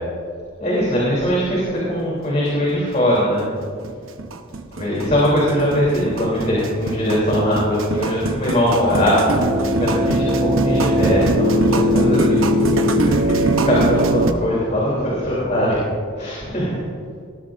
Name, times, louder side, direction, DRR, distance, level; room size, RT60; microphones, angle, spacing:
voice 1, 0.6-3.5 4.7-13.1 13.4-15.8 16.2-16.8, equal, 35° left, -6 dB, 3.2 m, -21 dB
sound 1, 2.3-2.4 2.7-2.8 3.1-14.3, right 1 dB, 80° right, 0.9 m, -20 dB
18.5 x 13.5 x 2.6 m, 2.1 s
head